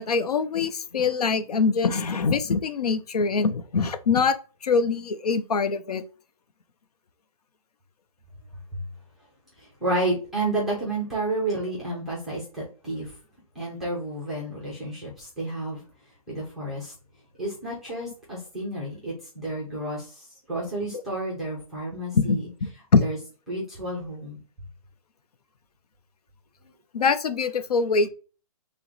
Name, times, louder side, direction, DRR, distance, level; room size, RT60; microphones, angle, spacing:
voice 1, 0.0-4.3 4.6-6.0 20.9-21.0 22.1-23.0 26.9-28.1, left 5 dB, 90° left, 0.7 m, -23 dB
voice 2, 9.6-13.1 13.5-15.8 16.3-16.9 17.4-22.5 23.0-23.2 23.5-24.4, right 2 dB, ahead, 0.4 m, -31 dB
5.8 x 2.1 x 3.9 m
hypercardioid pair, 175°, 19 cm